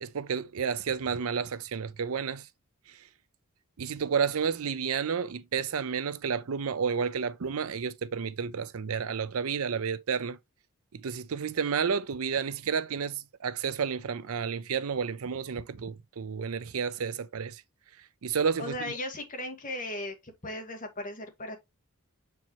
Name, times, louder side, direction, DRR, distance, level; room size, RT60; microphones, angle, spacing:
voice 1, 0.0-2.5 2.9-3.0 3.8-10.4 10.9-17.6 18.2-18.9, right 6 dB, 70° right, 0.5 m, -31 dB
voice 2, 18.6-21.6, left 1 dB, 35° left, 1.6 m, -37 dB
7.2 x 4.6 x 3.0 m
head